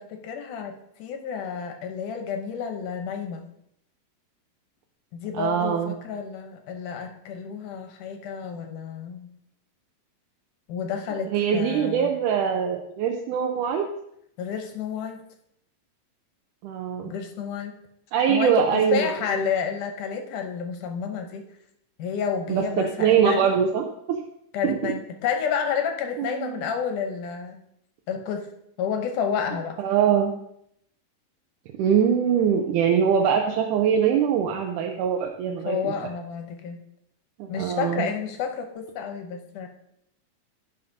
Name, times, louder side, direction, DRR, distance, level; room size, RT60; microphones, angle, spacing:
voice 1, 0.0-3.4 5.1-9.3 10.7-12.1 14.4-15.2 17.0-17.8 18.3-21.5 22.0-23.5 24.5-27.6 28.1-28.5 28.8-29.8 35.5-36.8 37.5-39.7, left 7 dB, 75° left, 4 dB, 2.2 m, -30 dB
voice 2, 5.3-5.9 11.3-13.9 16.6-17.1 18.1-19.5 22.5-23.9 24.6-24.9 26.2-26.7 29.8-30.3 31.8-35.9 37.4-38.1, right 8 dB, 80° right, 2 dB, 2.1 m, -23 dB
15.0 x 5.8 x 2.6 m, 0.75 s
omnidirectional pair, 3.9 m